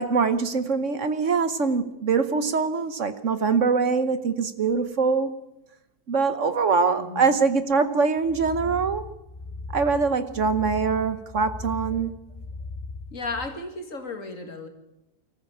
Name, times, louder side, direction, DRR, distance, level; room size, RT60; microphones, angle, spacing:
voice 1, 0.0-5.3 6.1-9.0 9.7-12.1, right 5 dB, 55° right, 1.3 m, -23 dB
voice 2, 7.0-7.3 13.1-14.7, left 3 dB, 55° left, 2.6 m, -34 dB
sound 1, 8.2-13.5, left 3 dB, 20° left, 2.2 m, -38 dB
24.5 x 14.5 x 8.6 m
omnidirectional pair, 1.6 m